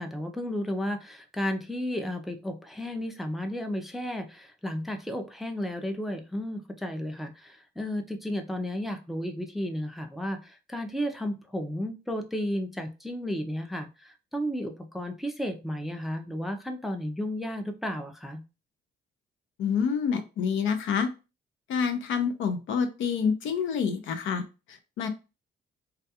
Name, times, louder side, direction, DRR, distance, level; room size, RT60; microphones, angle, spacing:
voice 1, 0.0-18.4, equal, ahead, 5 dB, 0.4 m, -33 dB
voice 2, 19.6-21.1 21.7-24.4 24.7-25.1, left 6 dB, 75° left, 7 dB, 0.6 m, -27 dB
2.4 x 2.3 x 2.7 m, 0.30 s
cardioid pair, 90°, 20 cm